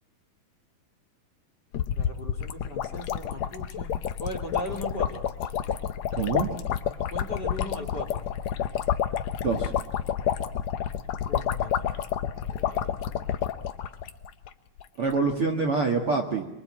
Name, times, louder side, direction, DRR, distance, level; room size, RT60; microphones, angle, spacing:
sound 1, 1.7-14.5 14.8-14.9 15.1-15.3, left 9 dB, 65° left, 1.8 m, -29 dB
voice 1, 2.0-3.9 4.2-5.3 7.1-8.2 11.3-11.9 12.4-13.0, left 1 dB, 30° left, 5 dB, 2.9 m, -38 dB
voice 2, 6.1-6.5 9.4-9.7 15.0-16.4, right 4 dB, 45° right, 2 dB, 2.1 m, -25 dB
26.5 x 23.5 x 8.7 m, 0.88 s
omnidirectional pair, 4.4 m